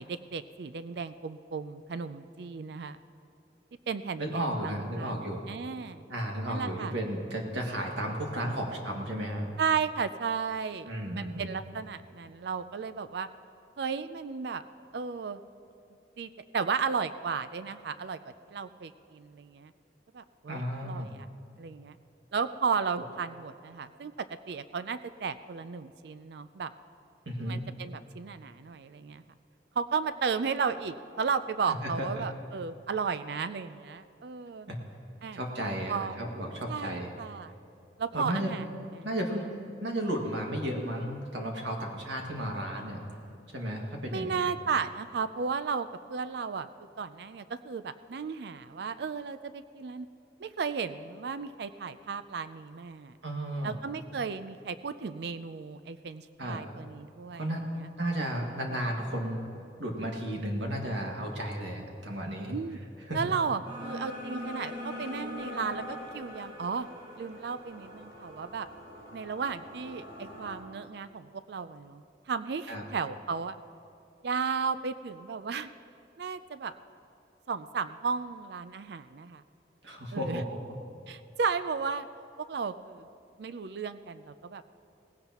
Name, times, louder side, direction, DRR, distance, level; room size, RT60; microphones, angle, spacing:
voice 1, 0.0-3.0 3.9-6.1 6.5-6.9 9.6-13.3 13.8-14.6 14.9-15.4 16.2-18.2 18.5-19.7 20.1-21.3 21.6-22.0 22.3-24.1 24.5-26.7 27.5-29.2 29.8-34.7 35.2-35.4 35.9-36.2 36.7-37.5 38.0-39.1 39.4-39.6 44.1-46.7 47.0-50.1 50.4-53.2 53.6-57.5 57.8-57.9 62.5-62.8 63.1-66.9 67.2-68.7 69.1-73.6 74.2-75.7 76.2-76.7 77.5-79.4 80.1-80.4 81.1-82.1 82.5-83.1 83.4-84.6, right 5 dB, 60° right, 12 dB, 0.4 m, -34 dB
voice 2, 4.2-5.5 6.1-9.5 10.9-11.5 20.5-21.1 27.3-27.6 31.8-32.3 34.7-34.8 35.3-37.1 38.1-38.5 39.0-39.4 39.8-43.0 43.5-44.4 53.2-53.8 56.4-56.6 57.4-57.6 58.0-59.5 59.8-62.6 63.1-63.3 72.7-72.8 79.8-80.6, right 1 dB, 80° right, 0 dB, 1.9 m, -33 dB
sound 1, 63.6-70.5, left 1 dB, 35° right, 4.2 m, -42 dB
18.5 x 16.5 x 3.0 m, 2.6 s
head